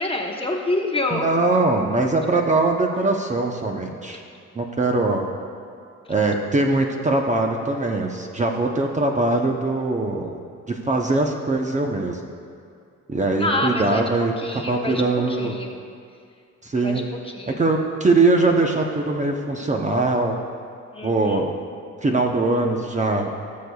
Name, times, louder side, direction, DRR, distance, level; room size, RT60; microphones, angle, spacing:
voice 1, 0.0-1.3 13.4-15.8 16.8-17.6 20.9-21.5, left 2 dB, 20° left, 1 dB, 1.0 m, -27 dB
voice 2, 1.1-4.2 4.6-5.3 6.1-10.4 10.7-12.2 13.1-15.6 16.6-17.0 17.5-20.3 21.0-21.5 22.0-23.3, right 2 dB, 25° right, 2 dB, 0.8 m, -21 dB
19.0 x 6.7 x 2.4 m, 2.3 s
cardioid pair, 90°, 30 cm